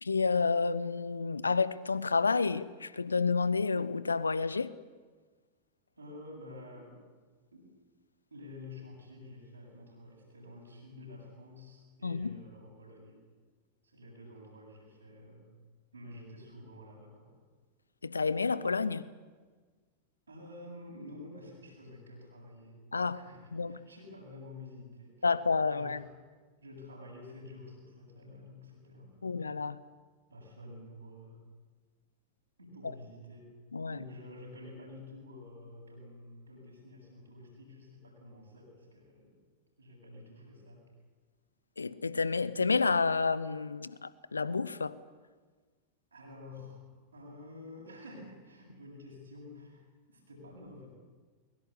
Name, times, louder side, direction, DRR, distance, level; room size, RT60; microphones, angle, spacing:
voice 1, 0.0-4.7 12.0-12.4 18.0-19.1 22.9-23.2 23.5-23.8 25.2-26.0 29.2-29.8 33.7-34.0 41.8-45.0, left 4 dB, 75° left, 0.9 m, -30 dB
voice 2, 6.0-7.0 7.5-7.7 8.3-13.2 13.8-15.5 15.9-17.3 20.3-22.8 23.1-25.4 25.7-26.0 26.6-29.5 30.3-31.4 32.6-33.5 33.9-39.4 39.8-40.8 46.1-46.8 47.1-50.9, left 2 dB, 80° right, 7.3 m, -50 dB
22.5 x 22.0 x 8.5 m
figure-of-eight pair, 90°, 0 cm